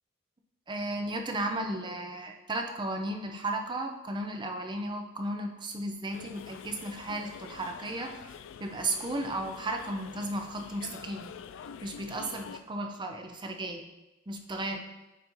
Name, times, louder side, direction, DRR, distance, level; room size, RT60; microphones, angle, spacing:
voice 1, 0.7-8.1 8.6-11.3 11.8-13.8 14.3-14.8, right 1 dB, 25° right, 4 dB, 0.5 m, -34 dB
sound 1, 6.1-12.6, left 7 dB, 65° left, 0.3 m, -46 dB
9.1 x 3.9 x 3.0 m, 1.0 s
head